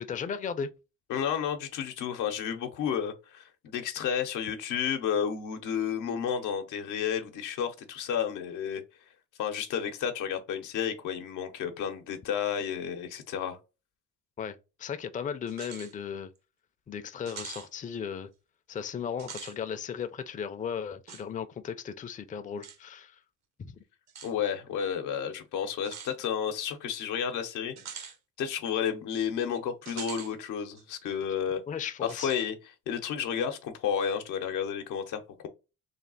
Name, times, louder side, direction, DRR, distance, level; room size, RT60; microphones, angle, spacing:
voice 1, 0.1-0.7 14.4-16.3 16.9-18.3 18.7-23.2 23.6-23.8 31.7-32.3, left 7 dB, 25° left, 0.4 m, -36 dB
voice 2, 1.1-8.8 9.4-13.6 24.2-28.1 28.4-31.6 32.0-32.6 32.9-35.5, left 8 dB, 90° left, 0.7 m, -31 dB
sound 1, 15.5-15.9 16.3-16.4 17.3-17.7 19.1-19.6 21.1-21.2 22.6-22.8 24.1-24.3 25.8-26.1 27.8-28.2 29.8-30.3 30.8-30.9 32.1-32.5, right 7 dB, 65° right, 0.7 m, -43 dB
3.3 x 2.3 x 3.9 m
cardioid pair, 90°, 30 cm